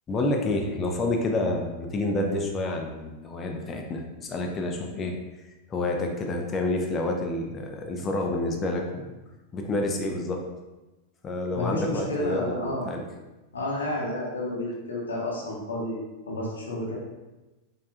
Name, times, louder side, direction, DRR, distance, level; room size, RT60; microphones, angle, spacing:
voice 1, 0.1-5.2 5.7-9.1 9.5-10.5 11.2-13.1, left 2 dB, 25° left, 1 dB, 0.4 m, -29 dB
voice 2, 11.5-12.8 13.5-17.0, left 1 dB, 70° left, -3 dB, 0.7 m, -31 dB
4.6 x 2.4 x 2.3 m, 1.1 s
figure-of-eight pair, 90°, 0 cm